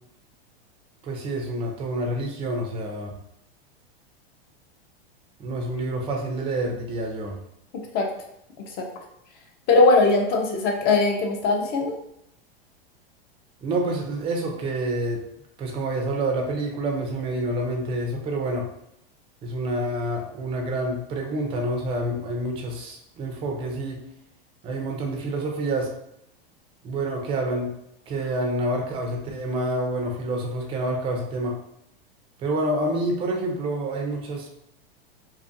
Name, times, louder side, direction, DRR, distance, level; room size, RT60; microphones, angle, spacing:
voice 1, 1.0-3.1 5.4-7.4 13.6-15.2 15.6-18.7 19.4-24.0 24.6-25.9 26.8-27.7 28.1-31.5 32.4-34.5, right 1 dB, 20° right, 1 dB, 0.4 m, -28 dB
voice 2, 9.7-11.9, left 3 dB, 35° left, 2 dB, 0.5 m, -20 dB
2.6 x 2.4 x 2.5 m, 0.77 s
supercardioid pair, 135°, 30 cm